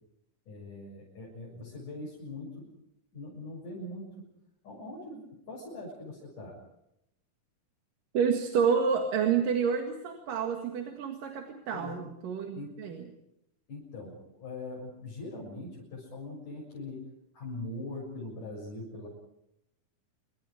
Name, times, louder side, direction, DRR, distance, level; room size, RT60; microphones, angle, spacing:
voice 1, 0.5-2.7 3.1-4.2 4.6-6.6 11.7-12.0 12.5-12.8 13.7-17.1 17.3-19.1, left 2 dB, 70° left, -4 dB, 8.6 m, -42 dB
voice 2, 8.1-13.1, right 6 dB, 80° right, 4 dB, 3.6 m, -29 dB
28.5 x 25.0 x 5.0 m, 0.80 s
omnidirectional pair, 3.8 m